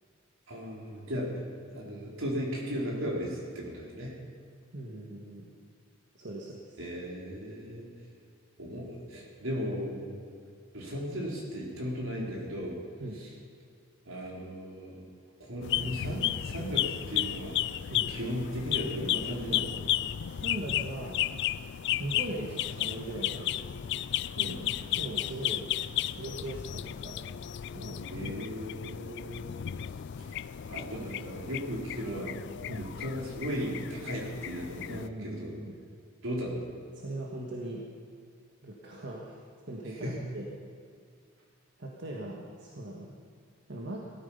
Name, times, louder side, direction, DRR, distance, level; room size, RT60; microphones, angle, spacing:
voice 1, 0.5-4.2 6.8-7.9 8.6-10.2 10.7-12.8 13.2-13.3 14.0-15.1 15.4-17.6 18.1-19.9 24.4-24.7 28.1-29.5 30.2-30.4 30.6-32.4 32.7-35.5 36.2-36.7 40.0-40.3, equal, 80° right, -2 dB, 3.9 m, -36 dB
voice 2, 4.7-5.5 6.1-6.8 13.0-13.2 17.9-18.1 20.3-21.2 22.0-23.6 25.0-25.7 26.1-27.2 27.7-28.0 32.7-32.9 34.9-35.8 36.9-37.8 38.6-39.4 39.7-40.4 41.8-43.1 43.7-44.0, right 1 dB, 55° right, -2 dB, 1.7 m, -39 dB
sound 1, 15.6-35.1, left 12 dB, 55° left, 0.4 m, -33 dB
18.5 x 13.0 x 5.6 m, 2.2 s
head